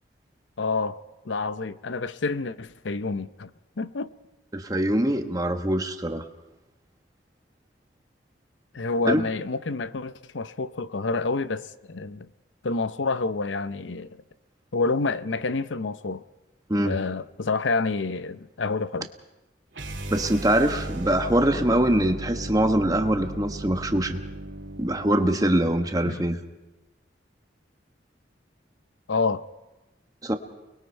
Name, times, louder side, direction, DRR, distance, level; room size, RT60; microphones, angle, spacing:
voice 1, 0.6-3.5 3.8-4.1 8.7-12.3 12.6-14.2 14.7-16.2 16.8-19.1 26.0-26.3 29.1-29.4, left 3 dB, 85° left, 0.7 m, -28 dB
voice 2, 4.5-6.3 9.1-9.2 16.7-16.9 20.1-24.2 24.8-26.4 30.2-30.3, right 1 dB, 20° right, 1.2 m, -23 dB
sound 1, 19.7-25.9, right 1 dB, 85° right, 2.5 m, -36 dB
30.0 x 20.5 x 4.5 m
head